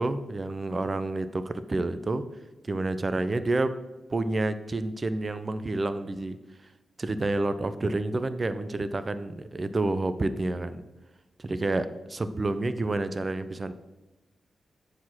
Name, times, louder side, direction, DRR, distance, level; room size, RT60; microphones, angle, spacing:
voice 1, 0.0-2.2 2.7-3.8 4.1-6.4 7.0-10.8 11.4-13.7, right 2 dB, 30° right, 12 dB, 0.5 m, -29 dB
7.3 x 4.2 x 6.0 m, 1.1 s
wide cardioid pair, 110°, 0 cm